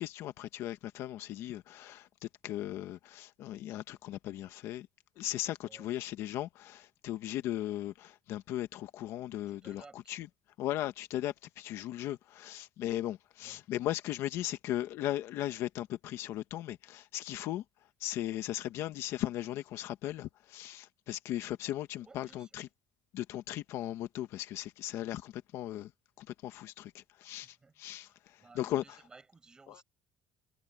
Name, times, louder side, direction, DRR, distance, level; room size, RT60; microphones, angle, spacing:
voice 1, 0.0-2.1 2.4-4.9 5.2-10.3 10.6-17.6 18.0-22.7 23.1-25.9 26.2-29.0 29.7-29.8, left 13 dB, 65° left, 1.2 m, -37 dB
voice 2, 5.6-5.9 9.5-10.2 13.4-13.6 18.7-18.8 22.0-22.6 27.4-29.8, right 4 dB, 15° right, 6.6 m, -59 dB
cardioid pair, 170°, 5 cm